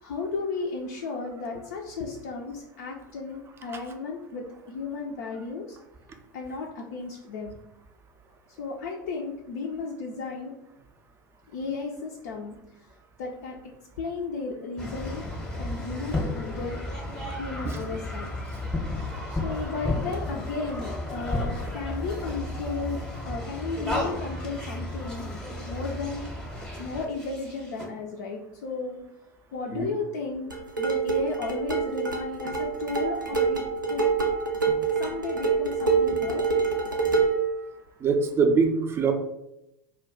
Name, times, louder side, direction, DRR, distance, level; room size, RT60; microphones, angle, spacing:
voice 1, 0.0-5.8 6.3-7.5 8.6-10.5 11.5-12.9 13.2-13.6 14.0-15.2 15.6-16.8 17.4-18.3 18.9-25.3 25.6-26.5 26.8-29.0 29.5-30.5 30.8-34.1 35.0-36.4, left 4 dB, 60° left, 0 dB, 0.3 m, -34 dB
sound 1, 14.8-27.9, left 1 dB, 5° left, 0.7 m, -33 dB
sound 2, 30.5-37.5, right 5 dB, 90° right, 0.4 m, -26 dB
voice 2, 38.0-39.1, right 5 dB, 25° right, 6 dB, 0.4 m, -23 dB
2.2 x 2.2 x 3.6 m, 0.87 s
figure-of-eight pair, 75°, 10 cm